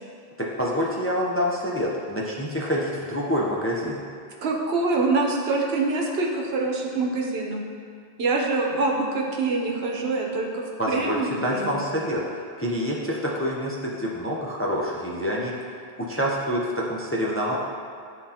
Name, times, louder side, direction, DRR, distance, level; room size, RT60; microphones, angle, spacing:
voice 1, 0.4-4.0 10.8-17.6, equal, 20° left, -3 dB, 0.5 m, -27 dB
voice 2, 4.4-7.6 8.2-11.7, right 3 dB, 85° right, 0 dB, 1.1 m, -25 dB
10.5 x 3.7 x 2.8 m, 2.3 s
omnidirectional pair, 1.0 m